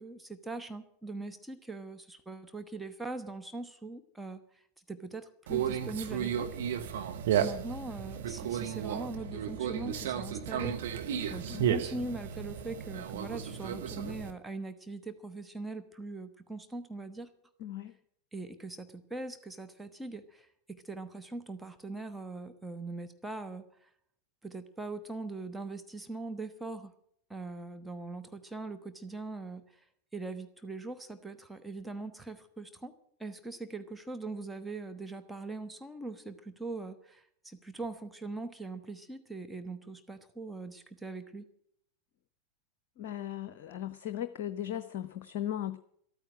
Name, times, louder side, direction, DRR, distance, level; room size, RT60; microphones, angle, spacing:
voice 1, 0.0-4.6 4.9-6.5 7.4-10.8 11.3-17.3 18.3-23.9 24.4-26.9 27.3-29.8 30.1-32.9 33.2-41.5, right 3 dB, 5° right, 7 dB, 1.1 m, -41 dB
Conversation, 5.5-14.3, right 9 dB, 55° right, 1.2 m, -33 dB
voice 2, 17.6-17.9 43.0-45.8, left 11 dB, 45° left, 12 dB, 0.7 m, -37 dB
14.0 x 9.1 x 8.8 m, 0.69 s
figure-of-eight pair, 90°, 0 cm